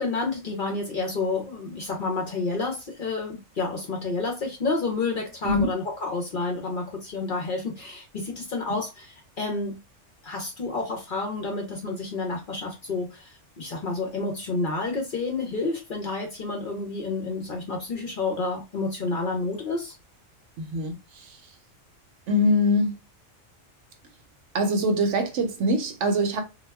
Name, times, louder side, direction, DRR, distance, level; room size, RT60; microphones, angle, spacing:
voice 1, 0.0-9.8 10.2-19.9, left 3 dB, 55° left, 0.6 m, -30 dB
voice 2, 20.6-21.4 22.3-23.0 24.5-26.4, left 1 dB, 70° right, 0.9 m, -23 dB
2.3 x 2.2 x 3.2 m
omnidirectional pair, 1.4 m